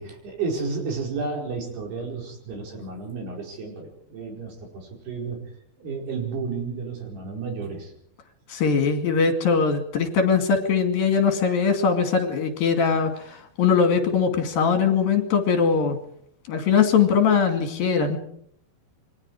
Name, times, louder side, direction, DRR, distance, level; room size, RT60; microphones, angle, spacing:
voice 1, 0.0-5.4 5.8-7.9, right 4 dB, 75° right, 1 dB, 6.9 m, -32 dB
voice 2, 8.5-16.0 16.5-18.2, left 6 dB, 65° left, 6 dB, 4.0 m, -21 dB
28.0 x 23.0 x 4.9 m, 0.66 s
omnidirectional pair, 4.6 m